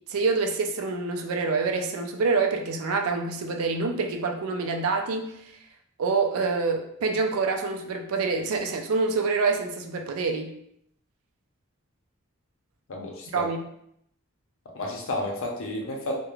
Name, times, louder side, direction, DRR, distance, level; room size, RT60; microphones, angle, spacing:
voice 1, 0.1-5.3 6.0-10.5 13.3-13.6, right 4 dB, 85° right, 4 dB, 0.4 m, -26 dB
voice 2, 12.9-13.5 14.7-16.2, left 1 dB, 65° left, 0 dB, 0.6 m, -31 dB
2.3 x 2.1 x 3.0 m, 0.73 s
head